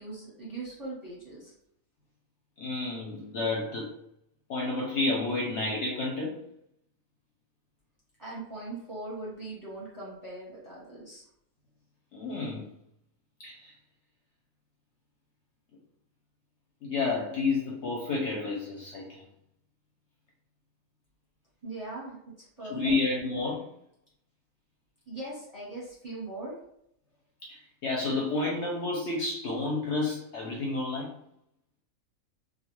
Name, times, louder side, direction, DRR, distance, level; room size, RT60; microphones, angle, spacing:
voice 1, 0.0-1.5 8.2-11.2 21.6-23.0 25.1-26.5, right 2 dB, 15° right, -7 dB, 0.8 m, -40 dB
voice 2, 2.6-3.9 4.5-6.4 12.1-12.7 13.4-13.7 16.8-19.2 22.7-23.7 27.4-31.2, left 3 dB, 65° left, -3 dB, 0.8 m, -30 dB
2.3 x 2.3 x 3.0 m, 0.72 s
omnidirectional pair, 1.5 m